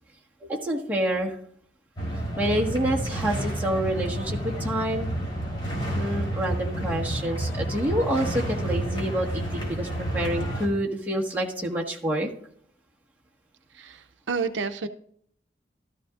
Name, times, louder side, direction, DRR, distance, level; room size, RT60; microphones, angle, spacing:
voice 1, 0.4-1.4 2.4-5.1 5.9-12.3, right 1 dB, 10° right, -3 dB, 1.5 m, -27 dB
sound 1, 2.0-10.7, right 1 dB, 25° left, 3.6 m, -30 dB
voice 2, 13.7-14.9, right 5 dB, 80° right, 9 dB, 0.6 m, -30 dB
13.5 x 13.0 x 2.5 m, 0.64 s
head